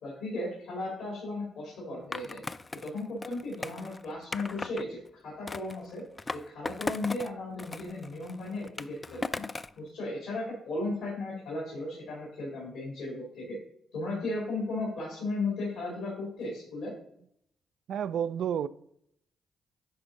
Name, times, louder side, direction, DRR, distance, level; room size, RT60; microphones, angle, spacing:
voice 1, 0.0-2.4 2.8-6.0 6.5-9.5 9.8-13.6 13.9-16.9, left 2 dB, 85° left, 2.6 m, -35 dB
Skateboard, 2.1-4.8 5.5-7.3 7.6-9.8, left 3 dB, 30° left, 0.3 m, -38 dB
voice 2, 17.9-18.7, right 9 dB, 70° right, 0.3 m, -30 dB
10.5 x 3.6 x 3.9 m
supercardioid pair, 55°, 0 cm